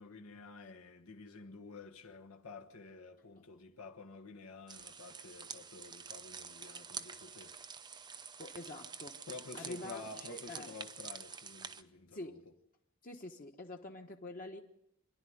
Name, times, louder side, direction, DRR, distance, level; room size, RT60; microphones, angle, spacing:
voice 1, 0.0-7.6 9.3-12.4, left 3 dB, 85° left, 1.4 m, -50 dB
sound 1, 4.7-11.8, right 6 dB, 20° right, 0.7 m, -48 dB
voice 2, 8.4-9.2 9.5-10.7 12.1-12.4 13.0-14.6, left 1 dB, 40° left, 1.2 m, -46 dB
26.0 x 11.0 x 9.4 m
head